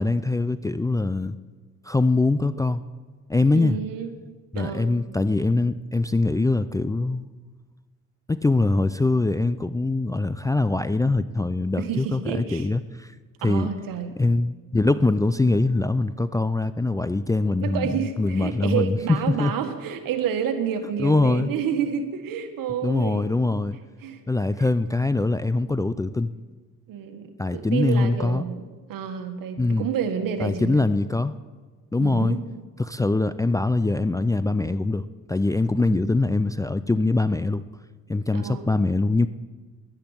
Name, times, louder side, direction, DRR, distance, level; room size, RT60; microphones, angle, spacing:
voice 1, 0.0-1.4 1.8-2.8 3.3-3.8 4.5-7.3 8.3-13.1 13.4-13.7 14.2-19.0 19.4-19.5 21.0-21.5 22.8-23.8 24.3-26.3 27.4-28.4 29.6-29.9 30.4-31.3 31.9-32.4 32.8-37.6 38.1-39.3, left 2 dB, 10° left, 12 dB, 0.4 m, -23 dB
voice 2, 3.5-4.1 4.5-4.9 11.8-12.7 13.4-14.1 17.6-23.6 24.0-24.2 24.6-24.7 26.9-28.6 28.9-30.9 32.0-32.4 35.8-36.0 38.3-38.7, right 8 dB, 75° right, 7 dB, 1.7 m, -29 dB
11.5 x 10.5 x 8.9 m, 1.4 s
cardioid pair, 85°, 34 cm